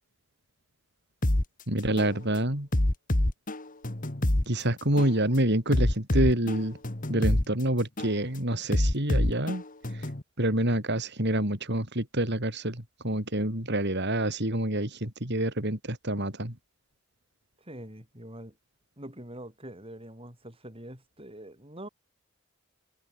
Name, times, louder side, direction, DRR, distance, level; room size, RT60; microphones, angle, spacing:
sound 1, 1.2-1.4 2.0-2.2 2.7-4.4 5.0-5.2 5.7-7.4 8.0-8.2 8.7-10.2, left 1 dB, 40° left, 1.7 m, -26 dB
voice 1, 1.7-2.7 4.5-6.8 7.1-9.6 9.9-10.1 10.4-16.5, right 1 dB, 55° right, 5.4 m, -27 dB
voice 2, 17.6-18.6 19.0-21.9, right 1 dB, 25° right, 7.8 m, -44 dB
head